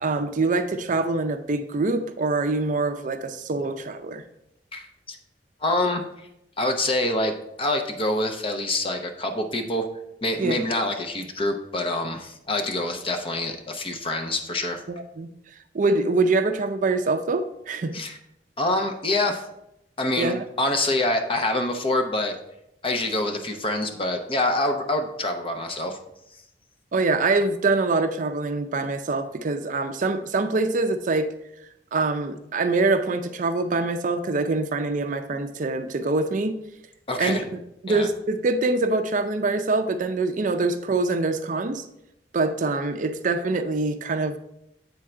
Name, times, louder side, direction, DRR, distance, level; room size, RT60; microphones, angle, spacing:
voice 1, 0.0-4.2 10.4-10.6 14.9-15.3 15.7-17.9 20.2-20.4 26.9-31.3 31.9-36.6 37.2-37.4 37.8-41.8 42.3-44.4, right 3 dB, 50° right, 9 dB, 0.5 m, -24 dB
voice 2, 4.7-5.2 5.6-6.3 6.6-7.3 7.6-9.9 10.2-14.8 17.9-18.2 18.6-19.4 20.0-22.4 22.8-26.0 37.1-37.4 37.9-38.1, left 2 dB, 30° left, 5 dB, 0.7 m, -26 dB
7.9 x 3.7 x 4.4 m, 0.81 s
head